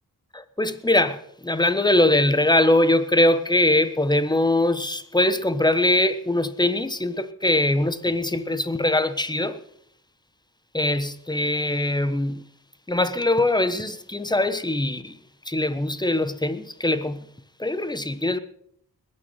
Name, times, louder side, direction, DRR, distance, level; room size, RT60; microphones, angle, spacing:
voice 1, 0.3-9.6 10.7-12.4 12.9-15.2 15.4-17.3 17.6-18.4, left 1 dB, 10° left, 1.2 m, -22 dB
20.5 x 9.9 x 5.8 m
wide cardioid pair, 75°, 37 cm